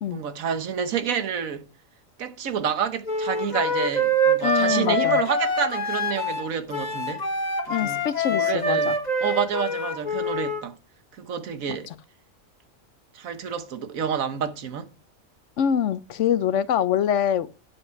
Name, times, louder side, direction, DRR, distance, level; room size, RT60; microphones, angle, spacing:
voice 1, 0.1-1.7 2.2-7.2 7.7-10.8 11.1-11.9 13.1-14.9, right 7 dB, 90° right, 1.5 m, -29 dB
Wind instrument woodwind instrument, 3.1-10.6, equal, 30° left, 1.5 m, -25 dB
voice 2, 4.4-5.2 7.7-8.9 11.9-12.0 15.6-17.5, left 9 dB, 70° left, 0.9 m, -24 dB
9.4 x 7.8 x 4.5 m
omnidirectional pair, 1.4 m